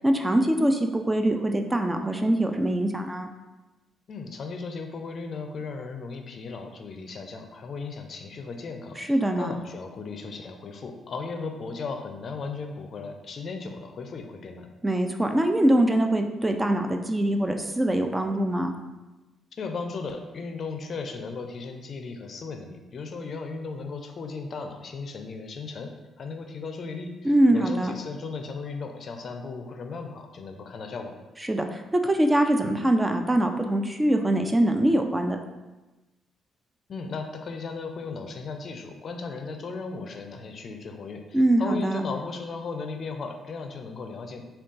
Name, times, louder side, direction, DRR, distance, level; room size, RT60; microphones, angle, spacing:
voice 1, 0.0-3.3 9.0-9.5 14.8-18.7 27.2-27.9 31.5-35.4 41.3-42.0, right 1 dB, 15° right, 5 dB, 0.3 m, -23 dB
voice 2, 4.1-14.7 19.5-31.2 36.9-44.4, left 4 dB, 50° left, 5 dB, 0.4 m, -36 dB
3.5 x 2.3 x 3.8 m, 1.1 s
cardioid pair, 90°, 0 cm